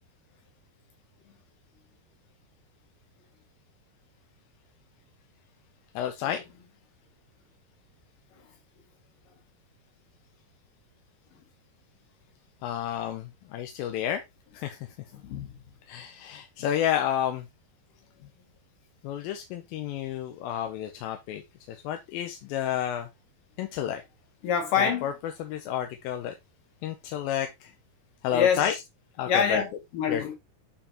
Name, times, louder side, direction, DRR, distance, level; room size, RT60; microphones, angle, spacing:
voice 1, 6.0-6.4 12.6-14.2 14.5-14.8 15.9-17.5 19.0-21.4 21.7-23.1 23.6-24.0 24.8-25.1 25.4-26.4 26.8-27.7 28.2-28.7 29.2-29.6 30.1-30.2, left 10 dB, 80° left, 2.3 m, -30 dB
voice 2, 15.1-15.6 24.4-25.1 28.3-28.7 29.3-30.4, left 7 dB, 65° left, 3.1 m, -26 dB
8.8 x 4.6 x 2.9 m
omnidirectional pair, 4.5 m